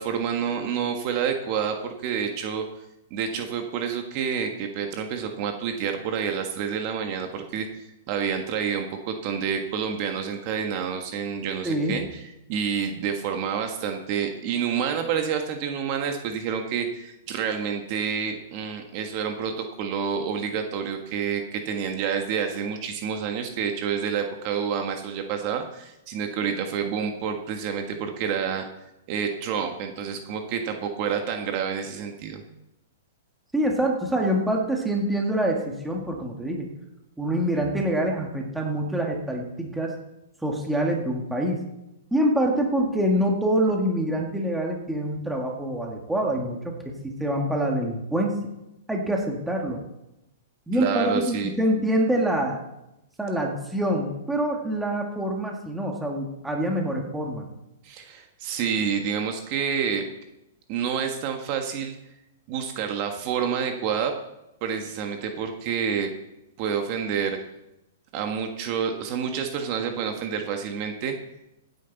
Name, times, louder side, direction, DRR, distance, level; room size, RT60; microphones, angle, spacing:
voice 1, 0.0-2.6 3.1-28.6 29.1-32.4 50.7-51.5 57.8-60.0 60.7-62.0 62.5-64.1 64.6-66.1 66.6-67.4 68.1-71.1, right 7 dB, 35° right, 4 dB, 1.4 m, -28 dB
voice 2, 11.6-12.0 33.5-36.7 37.2-40.0 40.4-41.6 42.1-48.4 48.9-49.8 50.7-52.6 53.2-57.4, right 1 dB, 5° right, 0 dB, 1.8 m, -25 dB
16.0 x 9.6 x 4.1 m, 0.90 s
hypercardioid pair, 155°, 0 cm